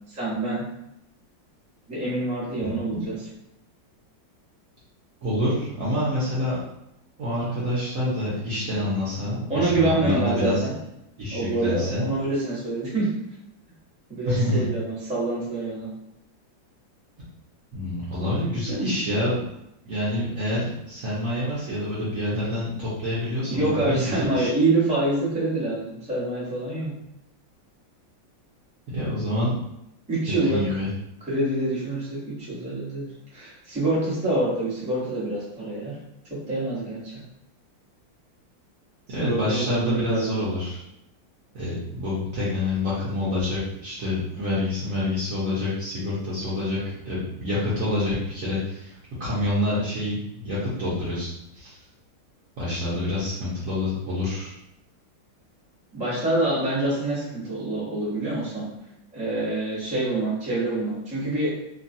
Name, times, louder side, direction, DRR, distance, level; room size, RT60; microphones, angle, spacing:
voice 1, 0.1-0.6 1.9-3.2 9.5-10.7 11.3-13.1 14.1-15.9 23.4-26.9 30.1-30.6 31.2-35.9 36.3-37.2 39.2-40.4 55.9-58.7 59.1-61.5, right 2 dB, 5° right, -9 dB, 0.5 m, -26 dB
voice 2, 5.2-6.6 7.2-10.6 11.2-12.1 14.2-14.7 17.7-19.4 19.8-24.5 28.9-29.5 30.3-30.9 39.1-40.8 41.5-46.8 47.0-48.9 49.2-50.2 50.4-51.3 51.5-51.8 52.6-54.5, left 1 dB, 60° right, -9 dB, 0.9 m, -27 dB
3.0 x 2.2 x 2.6 m, 0.84 s
omnidirectional pair, 2.1 m